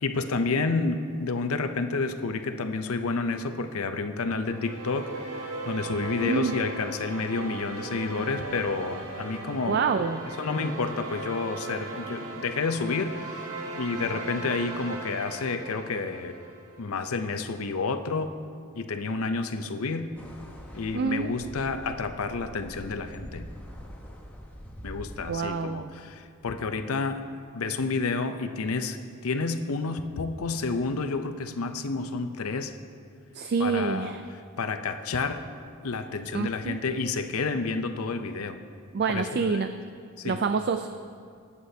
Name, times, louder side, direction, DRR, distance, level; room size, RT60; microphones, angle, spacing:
voice 1, 0.0-10.0 10.4-16.4 16.8-18.3 18.7-20.1 20.7-23.5 24.8-27.3 27.5-32.8 33.6-34.1 34.6-35.4 35.8-38.6 39.1-39.6 40.2-40.4, left 4 dB, 80° left, 8 dB, 0.6 m, -30 dB
sound 1, 4.3-16.7, right 3 dB, 90° right, 1.4 m, -38 dB
voice 2, 6.2-6.5 9.7-10.2 20.9-21.3 25.3-25.9 33.3-34.2 36.3-36.8 38.9-39.7 40.2-40.9, right 5 dB, 45° right, 8 dB, 0.3 m, -27 dB
sound 2, 20.2-25.2, equal, 10° left, 0.9 m, -44 dB
22.0 x 8.3 x 2.8 m, 2.3 s
head